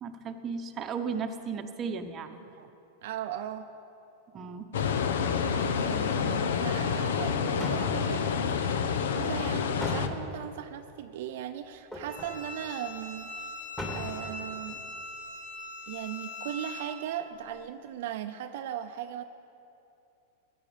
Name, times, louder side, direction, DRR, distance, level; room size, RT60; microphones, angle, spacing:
voice 1, 0.0-2.4 4.3-4.7, right 5 dB, 25° right, 6 dB, 0.9 m, -35 dB
voice 2, 3.0-3.7 5.5-13.5 13.9-14.8 15.9-19.2, right 10 dB, 65° right, 7 dB, 0.5 m, -38 dB
sound 1, 4.7-10.1, left 6 dB, 80° left, 0.8 m, -28 dB
sound 2, 7.2-7.3 7.6-8.3 9.8-10.5 11.9-12.4 12.9-13.0 13.2-13.3 13.8-14.3 14.7-14.8, left 1 dB, 10° left, 2.3 m, -38 dB
Bowed string instrument, 12.1-17.0, left 3 dB, 65° left, 1.5 m, -41 dB
15.5 x 9.6 x 5.0 m, 2.8 s
supercardioid pair, 135°, 0 cm